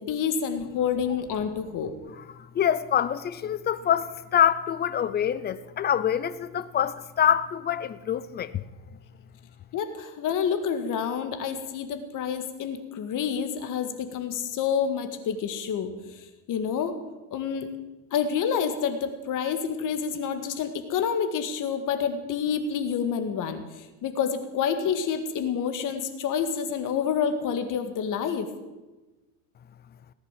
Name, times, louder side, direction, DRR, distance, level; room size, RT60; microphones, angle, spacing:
voice 1, 0.0-1.9 9.7-16.9 17.3-17.7 18.1-28.5, left 7 dB, 40° left, 1.9 m, -28 dB
voice 2, 2.2-8.7, left 9 dB, 20° left, 0.4 m, -25 dB
18.0 x 10.0 x 7.5 m
cardioid pair, 150°, 47 cm